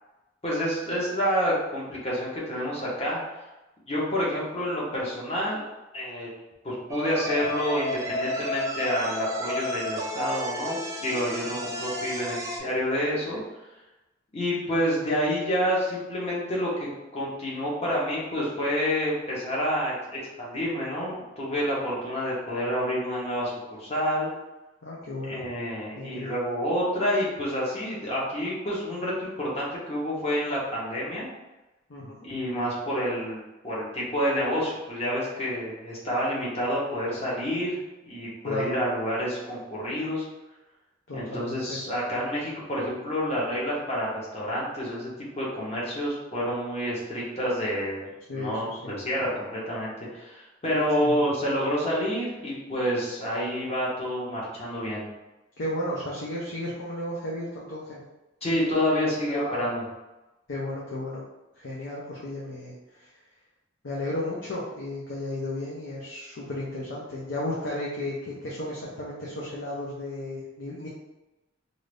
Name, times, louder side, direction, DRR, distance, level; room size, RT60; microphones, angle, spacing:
voice 1, 0.4-3.2 3.9-5.6 5.9-6.3 6.6-13.4 14.3-24.3 25.3-31.3 32.2-40.2 41.1-45.1 45.4-55.0 58.4-59.8, equal, 35° left, -6 dB, 1.1 m, -28 dB
sound 1, 6.9-12.6, left 1 dB, 15° right, 0.4 m, -32 dB
voice 2, 24.8-25.5 26.0-26.3 31.9-32.3 38.4-38.8 41.1-41.8 48.3-48.9 51.0-51.3 55.6-58.0 59.3-59.7 60.5-61.2 61.6-63.1 63.8-70.9, left 1 dB, 75° left, -6 dB, 0.7 m, -34 dB
2.7 x 2.6 x 3.3 m, 1.0 s
head